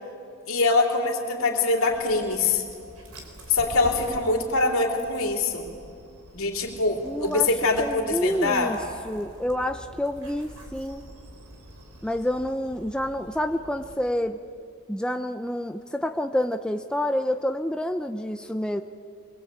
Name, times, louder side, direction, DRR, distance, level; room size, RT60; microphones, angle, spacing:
voice 1, 0.5-2.6 3.5-5.7 6.3-8.8, left 3 dB, 65° left, 1 dB, 3.6 m, -24 dB
Dog, 1.9-13.9, equal, 85° right, 4.2 m, -46 dB
voice 2, 7.0-7.5 7.8-8.8 9.1-11.0 12.0-14.4 14.9-18.8, left 1 dB, 5° left, 6 dB, 0.5 m, -28 dB
24.5 x 21.5 x 8.6 m, 2.4 s
head